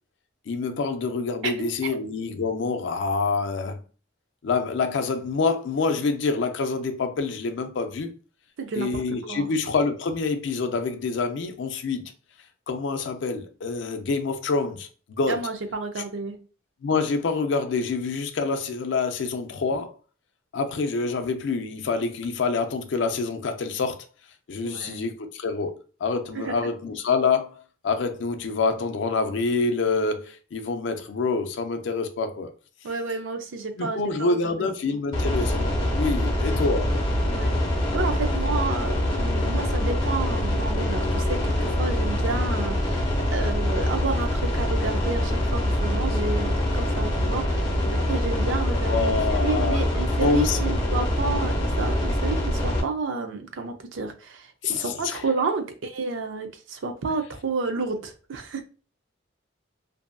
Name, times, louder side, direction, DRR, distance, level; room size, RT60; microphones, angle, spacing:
voice 1, 0.5-3.8 4.4-8.1 8.8-12.1 12.7-15.4 16.8-20.0 20.5-24.1 24.5-32.5 33.8-37.0 48.9-49.8 50.2-50.7 54.6-55.2, left 4 dB, 65° left, 0.4 m, -26 dB
voice 2, 8.6-9.0 9.3-9.5 15.3-16.4 24.6-25.1 26.3-26.6 32.8-35.0 37.3-37.6 37.9-58.6, right 4 dB, 75° right, 0.5 m, -31 dB
sound 1, 35.1-52.8, left 1 dB, 25° left, 0.9 m, -24 dB
2.6 x 2.5 x 2.2 m
head